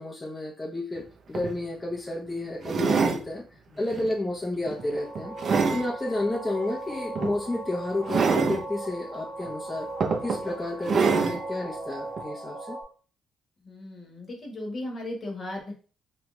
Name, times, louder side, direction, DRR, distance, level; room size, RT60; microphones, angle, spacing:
voice 1, 0.0-3.4 3.8-5.3 5.7-9.9 10.2-12.8, left 2 dB, 15° left, -3 dB, 0.8 m, -31 dB
sound 1, 1.0-1.1 1.3-1.6 2.6-3.2 3.9-4.1 4.7-5.9 7.1-7.3 8.1-8.6 9.4-9.5 10.0-10.4 10.8-11.4 12.2-12.3, right 5 dB, 55° right, 0.5 m, -25 dB
sound 2, 4.7-12.8, right 2 dB, 70° right, 0.9 m, -38 dB
voice 2, 13.6-15.7, left 1 dB, 40° left, 0 dB, 1.2 m, -36 dB
3.3 x 2.4 x 3.1 m, 0.38 s
cardioid pair, 90°, 0 cm